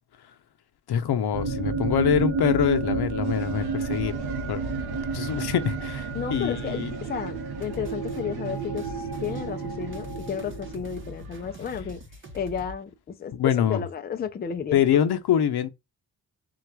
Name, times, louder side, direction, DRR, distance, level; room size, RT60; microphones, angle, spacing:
voice 1, 0.9-4.2 4.5-4.6 5.1-6.9 13.3-13.8 14.7-15.7, left 9 dB, 80° left, 0.7 m, -24 dB
sound 1, 1.3-11.1, right 4 dB, 60° right, 0.8 m, -31 dB
sound 2, 3.2-11.8, right 5 dB, 75° right, 1.0 m, -47 dB
voice 2, 6.1-12.0 12.3-14.8, left 7 dB, 25° left, 0.4 m, -33 dB
sound 3, 7.6-12.8, left 1 dB, 30° right, 0.8 m, -43 dB
3.8 x 2.3 x 4.6 m
wide cardioid pair, 150°, 38 cm